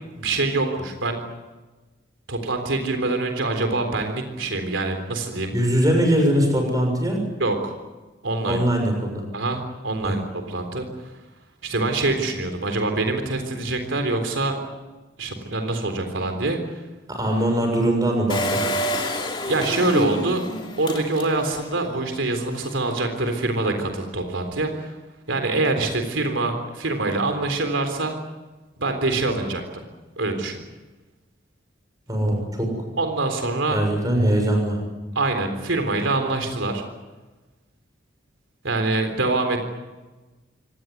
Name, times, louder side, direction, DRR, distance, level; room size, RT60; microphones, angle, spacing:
voice 1, 0.1-1.2 2.3-5.5 7.4-7.7 8.2-8.6 9.3-10.2 10.5-11.1 11.6-14.6 15.2-16.8 19.5-20.4 20.8-24.9 25.3-28.1 28.8-29.8 30.2-30.6 33.0-33.8 35.2-36.8 38.6-39.7, right 2 dB, 90° right, 5 dB, 3.8 m, -25 dB
voice 2, 5.5-7.2 8.5-9.2 10.0-10.2 17.1-18.5 32.1-32.7 33.7-34.8, right 1 dB, 20° right, 3 dB, 6.6 m, -21 dB
Engine, 18.3-21.8 22.2-22.3 22.5-22.6, left 1 dB, 25° left, 3.0 m, -28 dB
25.0 x 19.0 x 9.6 m, 1.2 s
head